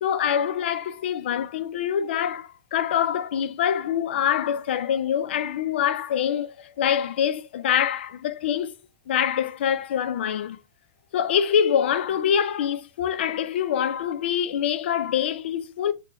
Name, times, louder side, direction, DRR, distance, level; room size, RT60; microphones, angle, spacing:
voice 1, 0.0-8.7 9.1-10.6 11.1-15.9, left 9 dB, 75° left, 0.5 m, -25 dB
4.5 x 2.2 x 3.1 m
supercardioid pair, 165°, 6 cm